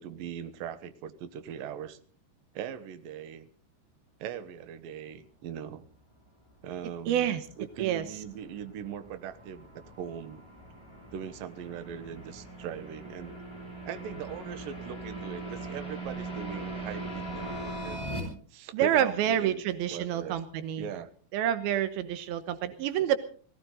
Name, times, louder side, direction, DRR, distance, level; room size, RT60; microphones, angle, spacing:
voice 1, 0.0-2.0 2.5-3.5 4.2-5.9 6.6-9.7 10.0-10.4 11.1-13.4 13.9-18.1 18.5-19.6 19.9-20.4 20.8-21.1 23.0-23.2, right 8 dB, 70° right, 11 dB, 2.8 m, -40 dB
sound 1, 7.0-18.2, right 2 dB, 5° left, 6.4 m, -41 dB
voice 2, 7.1-7.4 7.8-8.0 18.7-20.9 21.3-23.2, right 10 dB, 90° right, 12 dB, 2.9 m, -28 dB
21.5 x 16.5 x 3.9 m, 0.44 s
omnidirectional pair, 4.2 m